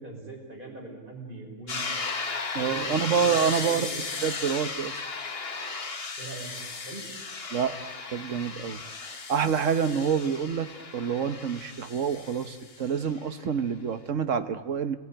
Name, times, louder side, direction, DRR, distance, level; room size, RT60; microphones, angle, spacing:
voice 1, 0.0-1.8 2.5-3.9 6.2-7.1, right 3 dB, 40° right, 0 dB, 6.4 m, -41 dB
sound 1, 1.7-13.3, left 4 dB, 50° left, 1.7 m, -36 dB
voice 2, 2.5-3.9 4.2-5.0 7.5-7.8 8.1-15.0, right 7 dB, 70° right, 9 dB, 1.5 m, -27 dB
29.5 x 20.5 x 9.0 m, 1.4 s
omnidirectional pair, 1.4 m